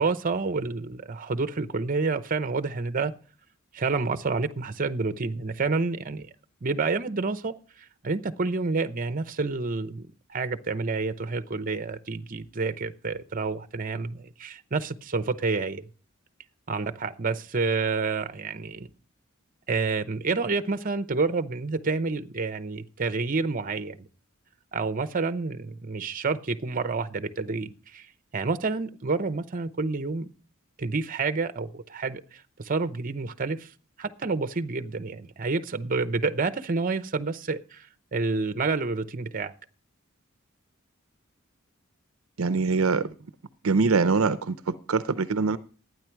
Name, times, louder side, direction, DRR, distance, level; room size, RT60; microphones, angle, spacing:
voice 1, 0.0-3.1 3.7-6.3 6.6-7.5 8.0-10.0 10.3-15.9 16.7-18.9 19.7-24.1 24.7-28.1 28.3-30.3 30.8-33.7 34.0-37.9 38.1-39.5, right 4 dB, 40° right, 0.8 m, -29 dB
voice 2, 42.4-43.1 43.6-45.6, right 4 dB, 75° right, 0.6 m, -24 dB
12.5 x 9.4 x 4.6 m
head